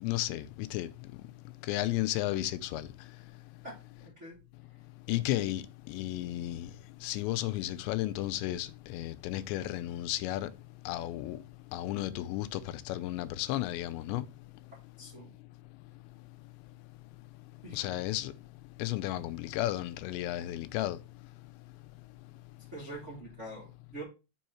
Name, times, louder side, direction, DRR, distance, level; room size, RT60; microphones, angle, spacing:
voice 1, 0.0-0.9 1.7-2.9 5.1-6.7 7.0-10.5 10.9-11.4 11.7-14.3 17.7-18.3 18.8-21.0, left 15 dB, 85° left, 2.9 m, -33 dB
voice 2, 3.6-4.4 15.0-15.3 17.6-17.9 22.7-24.0, right 1 dB, 70° right, 0.6 m, -45 dB
6.5 x 5.5 x 4.3 m
omnidirectional pair, 5.0 m